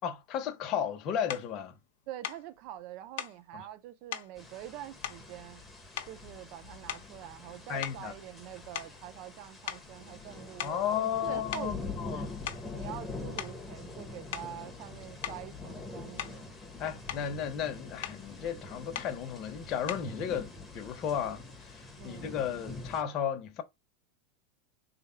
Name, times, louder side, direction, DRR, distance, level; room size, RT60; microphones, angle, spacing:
voice 1, 0.0-1.8 3.5-3.7 7.7-8.1 10.6-12.3 16.8-23.6, left 8 dB, 40° left, 1.1 m, -34 dB
sound 1, 1.3-1.5 2.2-2.5 3.2-3.4 4.1-4.3 5.0-5.6 5.9-6.3 6.8-7.2 7.8-9.4 9.7-9.9 10.6-10.9 11.5-11.7 12.3-12.7 13.4-13.6 14.3-14.6 15.2-15.4 16.2-16.5 16.8-17.3 18.0-18.2 18.9-19.2 19.9-20.1, left 11 dB, 70° left, 0.8 m, -40 dB
voice 2, 2.1-5.6 6.1-12.3 12.7-16.4 22.0-22.3, right 13 dB, 55° right, 0.6 m, -45 dB
sound 2, 4.4-23.0, left 3 dB, 5° left, 1.4 m, -45 dB
3.4 x 3.4 x 4.4 m
supercardioid pair, 125°, 0 cm